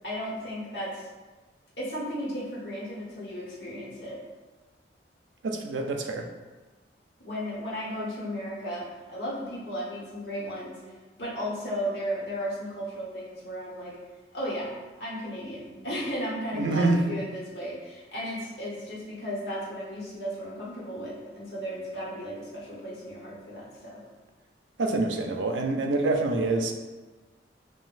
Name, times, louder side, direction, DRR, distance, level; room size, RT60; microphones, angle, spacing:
voice 1, 0.0-1.1 1.8-4.2 7.2-14.0 14.3-24.0, equal, 60° left, -6 dB, 1.3 m, -35 dB
voice 2, 5.4-6.3 16.5-17.0 24.8-26.7, right 2 dB, 90° right, 3 dB, 0.5 m, -26 dB
5.9 x 2.5 x 2.5 m, 1.2 s
head